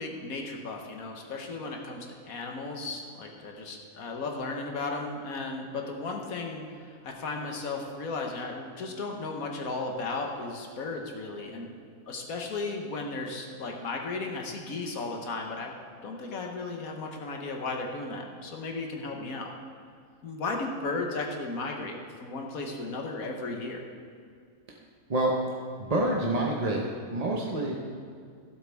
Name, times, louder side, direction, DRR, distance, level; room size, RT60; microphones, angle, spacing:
voice 1, 0.0-11.7 12.1-15.8 16.0-19.5 20.2-23.8, left 3 dB, 75° left, 2 dB, 1.6 m, -35 dB
voice 2, 25.8-26.8 27.1-27.7, right 2 dB, 30° right, -2 dB, 0.9 m, -27 dB
15.5 x 8.0 x 3.5 m, 2.2 s
omnidirectional pair, 1.5 m